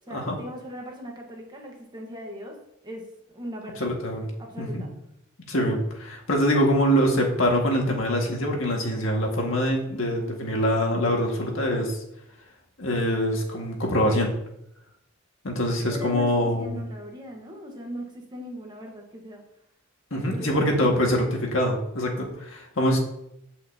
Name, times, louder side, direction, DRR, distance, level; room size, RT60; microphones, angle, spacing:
voice 1, 0.1-2.6 2.8-3.9 4.4-4.9 15.9-19.4 20.1-21.1, equal, 20° right, 0 dB, 1.4 m, -39 dB
voice 2, 3.8-4.3 4.6-4.8 5.4-12.0 12.8-14.3 15.4-16.8 20.1-23.0, equal, 70° left, 0 dB, 1.9 m, -24 dB
15.0 x 5.6 x 2.8 m, 0.79 s
head